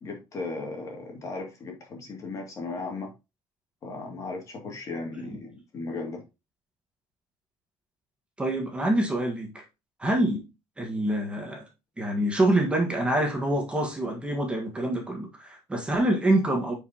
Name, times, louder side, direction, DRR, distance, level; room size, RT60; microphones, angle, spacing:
voice 1, 0.0-3.1 3.8-6.2, left 3 dB, 35° left, 2.5 m, -36 dB
voice 2, 8.4-9.6 10.0-10.4 10.8-11.6 12.0-16.7, right 1 dB, 10° right, 1.6 m, -26 dB
9.2 x 5.1 x 2.9 m
cardioid pair, 155°, 9 cm